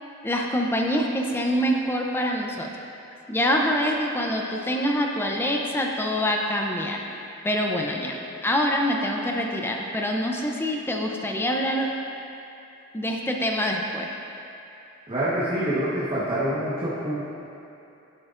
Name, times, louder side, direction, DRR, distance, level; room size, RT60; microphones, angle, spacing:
voice 1, 0.2-2.7 3.3-7.0 7.4-11.9 12.9-14.1, equal, 10° left, 0 dB, 0.6 m, -25 dB
voice 2, 15.1-17.2, right 1 dB, 30° right, -10 dB, 1.3 m, -26 dB
11.5 x 9.0 x 2.5 m, 2.8 s
head